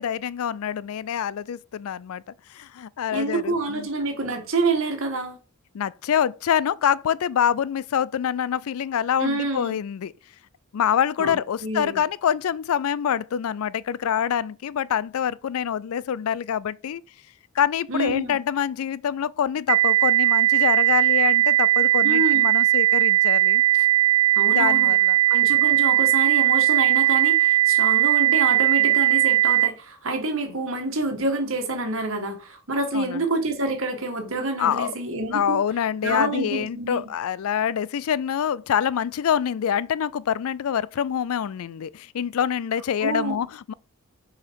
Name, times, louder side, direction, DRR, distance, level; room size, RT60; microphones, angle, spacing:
voice 1, 0.0-2.2 2.5-3.9 5.7-10.1 10.7-17.0 17.6-23.9 24.5-25.2 32.9-33.2 34.6-34.9 35.3-43.7, left 8 dB, 75° left, 0.3 m, -26 dB
voice 2, 3.1-5.4 9.2-9.8 11.2-12.0 17.9-18.4 22.0-22.5 24.4-24.9 25.3-35.6 36.0-37.1 43.0-43.4, right 2 dB, 65° right, 1.9 m, -27 dB
sound 1, 19.7-29.7, right 14 dB, 85° right, 0.4 m, -19 dB
6.8 x 5.0 x 4.8 m
head